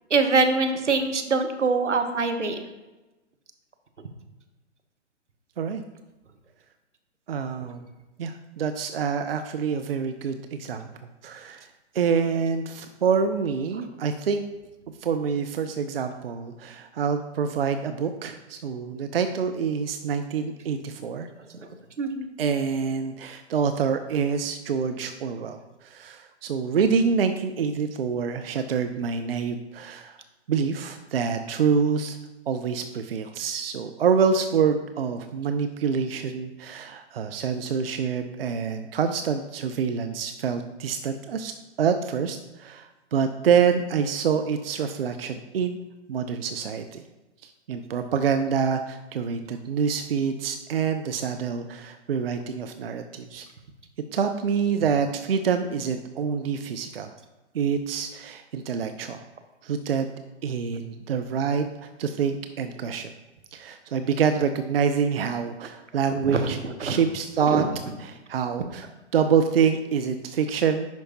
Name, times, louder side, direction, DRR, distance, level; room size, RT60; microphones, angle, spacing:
voice 1, 0.1-2.6 22.0-22.3 66.3-66.4 66.8-67.0 67.5-67.6, right 4 dB, 80° right, 6 dB, 1.0 m, -23 dB
voice 2, 7.3-7.9 8.2-10.8 11.2-11.7 11.9-14.4 15.0-21.3 22.4-30.2 30.5-32.2 32.5-45.8 46.1-47.0 47.4-53.5 54.1-57.1 57.5-59.2 59.6-60.1 60.4-63.1 63.5-67.7 68.0-70.9, right 6 dB, 55° right, 8 dB, 0.5 m, -26 dB
10.5 x 4.6 x 2.8 m, 1.1 s
figure-of-eight pair, 125°, 35 cm